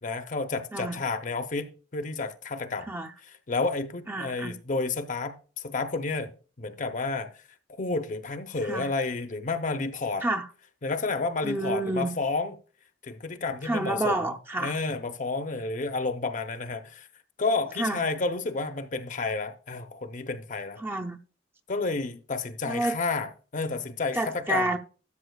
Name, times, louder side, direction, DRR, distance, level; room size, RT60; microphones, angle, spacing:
voice 1, 0.0-2.9 3.5-7.3 7.7-10.2 10.8-12.5 13.0-14.2 14.6-17.1 17.4-20.8 21.7-24.7, left 3 dB, 45° left, 0.7 m, -31 dB
voice 2, 4.1-4.5 8.6-8.9 10.2-10.5 11.4-12.2 13.6-14.8 17.8-18.0 20.8-21.2 22.7-23.0 24.1-24.8, right 2 dB, 15° right, 0.5 m, -29 dB
13.0 x 7.0 x 2.3 m
head